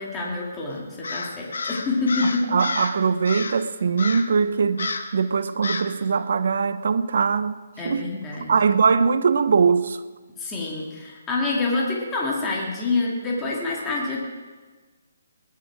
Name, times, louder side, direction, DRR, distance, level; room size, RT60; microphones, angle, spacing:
voice 1, 0.0-2.6 7.8-8.6 10.4-14.2, left 3 dB, 15° left, 2.2 m, -27 dB
Crow, 1.0-3.0 3.3-3.6 4.0-4.4 4.8-5.2 5.6-6.0, left 4 dB, 75° left, 1.3 m, -30 dB
voice 2, 2.5-7.6 7.8-8.2 8.5-10.0, right 5 dB, 65° right, 0.8 m, -21 dB
20.5 x 10.5 x 4.9 m
hypercardioid pair, 165°, 0 cm